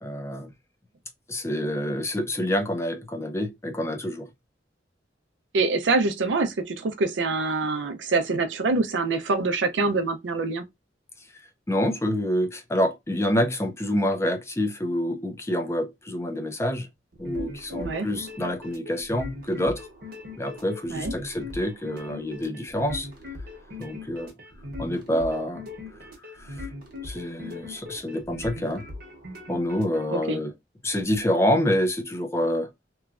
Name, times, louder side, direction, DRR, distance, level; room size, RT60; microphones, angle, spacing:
voice 1, 0.0-0.5 1.3-4.3 11.3-11.4 11.7-16.9 17.2-19.9 20.4-23.1 23.8-24.3 24.8-25.7 26.0-26.1 26.3-26.7 27.0-28.9 29.5-30.5 30.8-32.7, equal, 15° left, 0.5 m, -27 dB
voice 2, 5.5-10.6 17.8-18.1 20.9-21.1 30.1-30.4, right 3 dB, 80° right, 0.5 m, -25 dB
sound 1, 17.1-30.0, left 3 dB, 55° right, 0.9 m, -40 dB
3.0 x 2.2 x 2.4 m
head